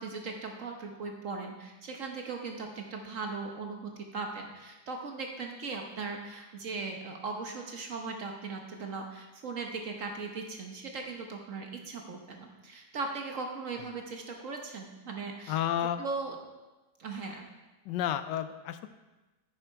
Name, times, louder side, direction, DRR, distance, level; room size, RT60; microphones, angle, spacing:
voice 1, 0.0-15.6 16.0-16.4 17.0-17.5, right 4 dB, 50° right, 2 dB, 1.2 m, -38 dB
voice 2, 15.5-16.0 17.8-18.9, left 10 dB, 80° left, 11 dB, 1.2 m, -31 dB
9.8 x 6.8 x 4.6 m, 1.1 s
omnidirectional pair, 1.9 m